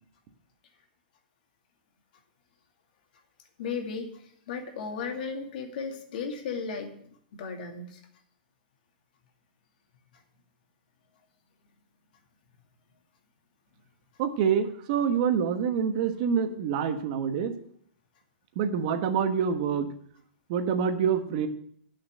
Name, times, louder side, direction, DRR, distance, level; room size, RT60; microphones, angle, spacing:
voice 1, 3.6-7.0 7.4-8.0, left 5 dB, 65° left, 3 dB, 2.3 m, -35 dB
voice 2, 14.2-17.5 18.5-19.9 20.5-21.5, right 7 dB, 45° right, 8 dB, 1.2 m, -26 dB
9.0 x 6.3 x 7.6 m, 0.63 s
hypercardioid pair, 150°, 5 cm